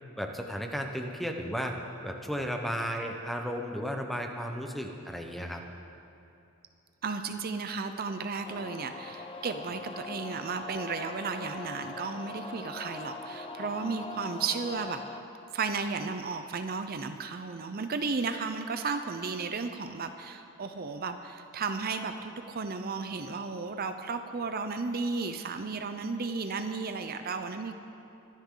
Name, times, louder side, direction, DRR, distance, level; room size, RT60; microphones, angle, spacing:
voice 1, 0.2-1.7 2.0-5.6, equal, ahead, 3 dB, 0.9 m, -34 dB
voice 2, 7.0-15.0 15.5-27.7, right 4 dB, 45° right, 8 dB, 0.6 m, -34 dB
sound 1, 8.4-15.2, left 3 dB, 25° left, 0.6 m, -42 dB
23.5 x 10.5 x 3.8 m, 2.7 s
head